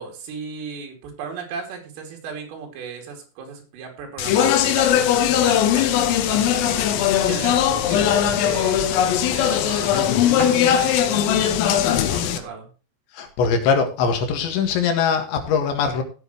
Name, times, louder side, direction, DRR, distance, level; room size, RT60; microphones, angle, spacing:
voice 1, 0.0-12.7, right 5 dB, 80° right, 2 dB, 5.2 m, -36 dB
Speech, 4.2-12.4, left 10 dB, 85° left, 3.7 m, -19 dB
sound 1, 5.3-12.6, left 3 dB, 35° left, 4.6 m, -36 dB
voice 2, 13.1-16.0, left 6 dB, 70° left, 5 dB, 3.8 m, -21 dB
17.0 x 7.9 x 3.1 m, 0.36 s
omnidirectional pair, 5.8 m